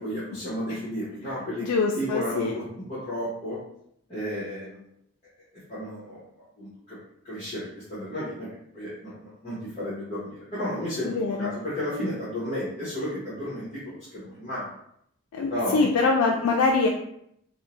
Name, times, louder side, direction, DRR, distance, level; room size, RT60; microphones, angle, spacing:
voice 1, 0.0-1.7 1.9-3.6 4.1-4.8 5.7-6.2 6.6-7.0 7.2-8.5 8.7-14.7 15.5-15.8, equal, 30° left, -11 dB, 0.9 m, -33 dB
voice 2, 1.6-2.5 11.0-11.5 15.3-16.9, left 4 dB, 90° left, 0 dB, 0.3 m, -24 dB
2.6 x 2.0 x 2.9 m, 0.73 s
head